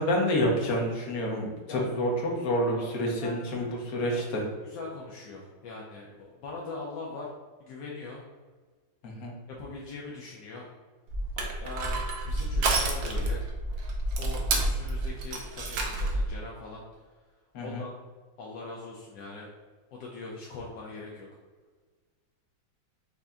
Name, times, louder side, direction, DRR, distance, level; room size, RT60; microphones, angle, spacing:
voice 1, 0.0-4.4 9.0-9.3 17.5-17.8, equal, 55° left, -1 dB, 1.3 m, -28 dB
voice 2, 2.8-3.7 4.0-4.3 4.6-7.3 7.6-8.2 9.5-10.7 11.4-13.4 14.2-16.8 17.6-18.0 18.4-19.5 19.9-21.3, left 3 dB, 70° left, -3 dB, 1.3 m, -41 dB
Crushing, 11.1-16.3, right 2 dB, 70° right, 1.3 m, -29 dB
5.5 x 2.6 x 3.5 m, 1.5 s
omnidirectional pair, 2.0 m